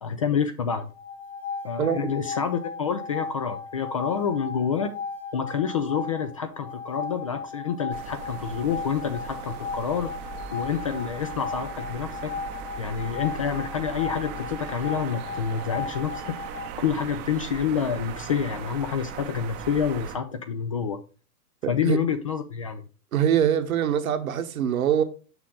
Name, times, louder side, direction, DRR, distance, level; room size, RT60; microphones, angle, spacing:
voice 1, 0.0-0.9 1.6-4.9 5.3-10.1 10.5-12.3 12.8-16.4 16.8-21.0 21.7-22.8, left 7 dB, 25° left, 0.3 m, -28 dB
sound 1, 0.9-16.7, left 5 dB, 70° left, 1.6 m, -36 dB
voice 2, 1.8-2.1 21.8-22.0 23.1-25.0, right 9 dB, 60° right, 1.2 m, -23 dB
sound 2, 7.9-20.2, right 7 dB, 25° right, 0.7 m, -39 dB
6.2 x 6.2 x 3.6 m
figure-of-eight pair, 105°, 46 cm